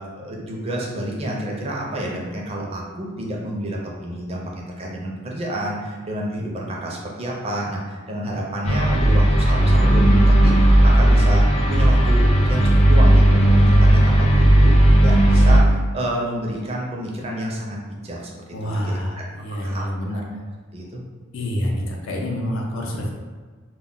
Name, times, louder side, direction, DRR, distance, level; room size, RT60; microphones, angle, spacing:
voice 1, 0.0-11.4 11.7-17.8 18.0-18.4 18.6-19.2 19.6-19.8 20.7-21.0, right 1 dB, 30° right, -2 dB, 0.4 m, -29 dB
sound 1, 8.6-15.6, right 1 dB, 30° left, 0.4 m, -14 dB
voice 2, 18.5-20.2 21.3-23.1, equal, 80° left, 0 dB, 0.5 m, -27 dB
2.2 x 2.0 x 3.7 m, 1.5 s
head